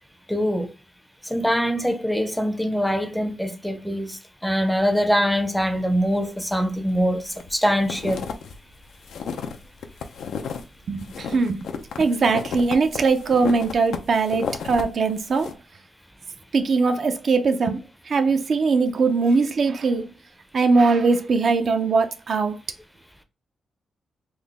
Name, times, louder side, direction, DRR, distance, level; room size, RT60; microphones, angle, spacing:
voice 1, 0.3-0.7 1.2-8.3, equal, ahead, 0.5 m, -23 dB
sound 1, 6.9-7.5 7.8-10.6 11.0-14.8 15.2-15.5, left 6 dB, 80° left, 0.5 m, -33 dB
voice 2, 10.9-11.6 12.0-15.5 16.5-17.8 18.1-20.1 20.5-22.6, right 4 dB, 55° right, 0.5 m, -21 dB
3.8 x 2.0 x 3.3 m
cardioid pair, 95°, 0 cm